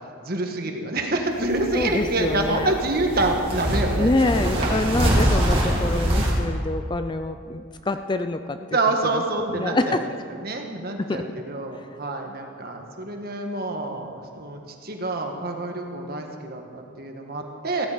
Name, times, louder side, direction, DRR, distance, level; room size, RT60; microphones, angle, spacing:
voice 1, 0.2-4.9 8.7-9.9 10.3-17.9, right 2 dB, 45° right, 3 dB, 1.5 m, -27 dB
sound 1, 1.3-6.4, equal, 25° right, 2.6 m, -24 dB
voice 2, 1.7-2.7 3.9-8.6 9.1-9.2 9.5-10.0 11.0-11.2, left 2 dB, 20° left, 9 dB, 0.4 m, -26 dB
15.5 x 14.0 x 5.0 m, 2.4 s
head